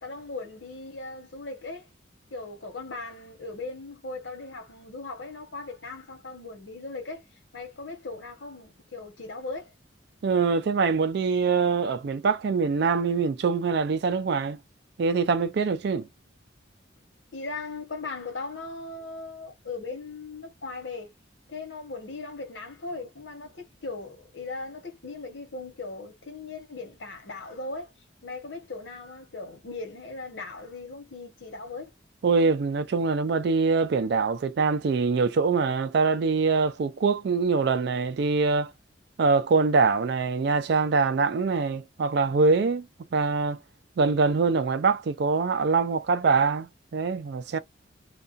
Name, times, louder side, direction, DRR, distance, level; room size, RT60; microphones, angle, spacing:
voice 1, 0.0-1.9 2.3-7.2 7.5-9.7 17.3-21.1 21.5-27.9 28.2-31.9, left 3 dB, 70° left, 1.1 m, -38 dB
voice 2, 10.2-14.6 15.0-16.1 32.2-38.7 39.2-42.9 43.1-43.6 44.0-47.6, right 4 dB, 55° right, 0.3 m, -24 dB
2.3 x 2.2 x 2.5 m
head